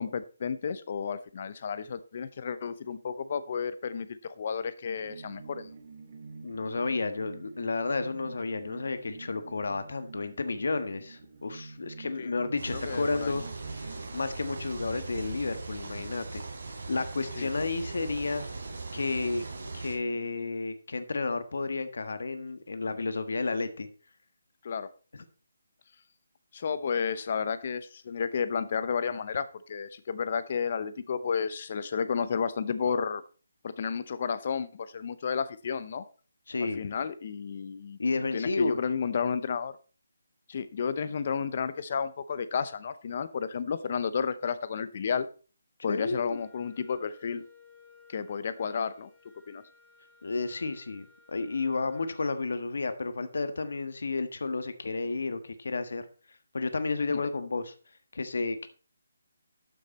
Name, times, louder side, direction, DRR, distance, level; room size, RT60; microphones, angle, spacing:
voice 1, 0.0-5.7 12.2-12.3 12.7-13.3 17.4-17.5 24.6-24.9 26.5-33.2 33.6-36.0 36.8-38.0 38.3-39.7 40.5-45.3 45.8-47.4 48.1-49.1 49.5-49.6 57.1-57.2, left 6 dB, 30° left, 14 dB, 0.7 m, -32 dB
sound 1, 5.0-14.1, right 4 dB, 30° right, 1.1 m, -47 dB
voice 2, 6.4-13.4 13.7-16.4 16.9-18.4 18.9-19.4 19.7-23.9 25.1-25.2 36.5-36.9 38.0-38.8 45.9-46.4 50.2-56.0 56.5-57.7 58.1-58.7, left 3 dB, 55° left, 10 dB, 1.4 m, -31 dB
sound 2, 12.6-20.0, right 3 dB, 50° right, 3.4 m, -39 dB
Wind instrument woodwind instrument, 45.8-52.3, left 5 dB, 5° left, 1.3 m, -59 dB
12.5 x 6.4 x 4.2 m, 0.37 s
hypercardioid pair, 180°, 0 cm